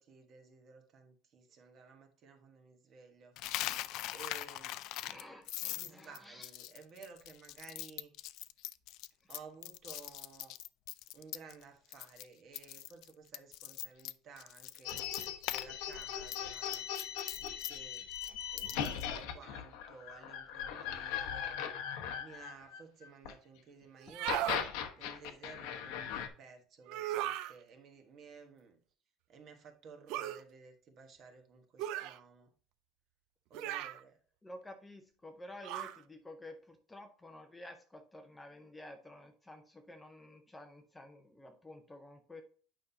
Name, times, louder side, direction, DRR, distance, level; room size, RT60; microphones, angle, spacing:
voice 1, 0.0-3.8 4.1-5.2 5.7-8.1 9.3-10.5 11.1-14.9 15.5-16.9 17.3-18.1 18.5-21.6 22.1-24.5 25.0-28.8 29.3-32.5 33.5-34.2, right 5 dB, 35° right, 1.2 m, -55 dB
Coin (dropping), 3.4-11.6 11.9-12.2 12.5-15.7 15.9-19.1, left 15 dB, 55° left, 0.3 m, -42 dB
voice 2, 5.0-6.5 34.4-42.4, left 1 dB, 10° left, 0.6 m, -51 dB
sound 1, 14.8-23.3 24.1-26.3, left 9 dB, 75° left, 1.0 m, -39 dB
sound 2, 24.0-24.6 26.9-27.5 30.1-30.4 31.8-32.2 33.5-34.0 35.6-36.0, right 13 dB, 60° right, 0.4 m, -37 dB
8.8 x 5.5 x 2.7 m
cardioid pair, 165°, 0 cm